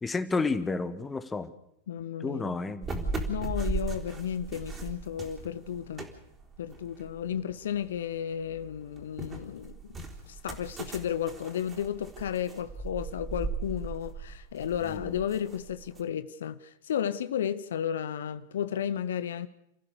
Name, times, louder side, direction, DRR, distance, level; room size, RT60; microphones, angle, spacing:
voice 1, 0.0-1.5 2.2-3.1 14.9-15.0, left 3 dB, 15° left, 1.7 m, -31 dB
voice 2, 1.9-2.6 3.3-6.1 6.6-10.0 10.3-19.5, left 9 dB, 70° left, 0.8 m, -33 dB
sound 1, 2.8-8.0 8.4-16.0, right 3 dB, 20° right, 4.0 m, -38 dB
30.0 x 15.0 x 6.8 m
figure-of-eight pair, 95°, 0 cm